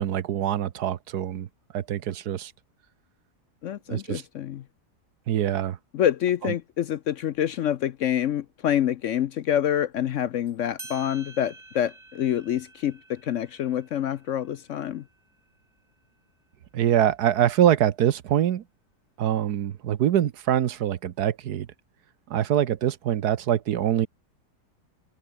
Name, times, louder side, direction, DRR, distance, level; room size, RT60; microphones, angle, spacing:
voice 1, 0.0-1.5 1.7-2.5 3.9-4.2 5.3-5.8 6.4-6.5 16.7-18.6 19.2-21.7 22.3-24.1, right 10 dB, 70° right, 1.4 m, -24 dB
voice 2, 3.6-4.6 5.9-15.0, left 10 dB, 65° left, 0.8 m, -27 dB
sound 1, 10.5-10.6 10.8-15.9, right 2 dB, 25° right, 2.5 m, -49 dB
omnidirectional pair, 1.8 m